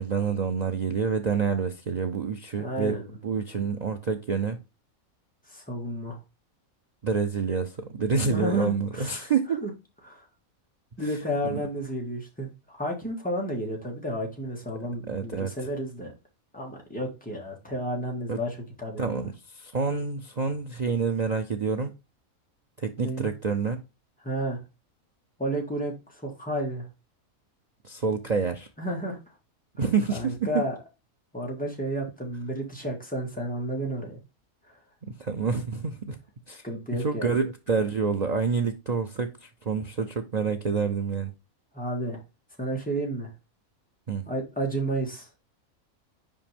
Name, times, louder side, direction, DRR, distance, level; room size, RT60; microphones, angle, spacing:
voice 1, 0.0-3.0 3.2-4.6 7.0-9.7 11.4-11.6 15.1-15.5 18.3-18.4 19.0-21.9 22.8-23.8 27.8-28.7 29.8-30.4 35.2-36.2 36.5-36.6 37.0-41.3 44.1-44.3, right 5 dB, 70° right, 0.3 m, -28 dB
voice 2, 2.5-3.1 5.5-6.2 8.3-9.3 9.6-9.7 10.0-10.3 11.0-16.1 16.5-19.3 23.0-23.3 24.2-24.6 25.4-26.9 28.8-29.2 30.1-30.7 31.3-34.2 34.7-34.8 36.6-37.3 41.7-42.2 42.6-43.3 44.3-45.3, right 1 dB, 5° left, 1.8 m, -31 dB
5.4 x 5.0 x 3.4 m
omnidirectional pair, 1.5 m